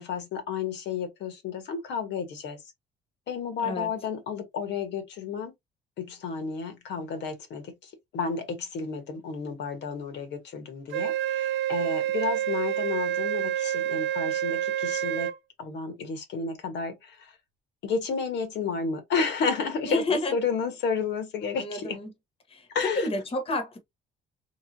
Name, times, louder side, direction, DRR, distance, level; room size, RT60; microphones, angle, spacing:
voice 1, 0.0-2.6 3.3-5.5 6.0-15.3 15.6-17.3 17.8-22.0 22.7-23.1, left 5 dB, 70° left, 1.2 m, -31 dB
Wind instrument woodwind instrument, 10.9-15.4, right 12 dB, 80° right, 0.7 m, -28 dB
voice 2, 19.8-20.3 21.5-22.1 22.5-23.8, left 2 dB, 30° left, 1.1 m, -30 dB
3.4 x 3.1 x 2.7 m
cardioid pair, 120°, 19 cm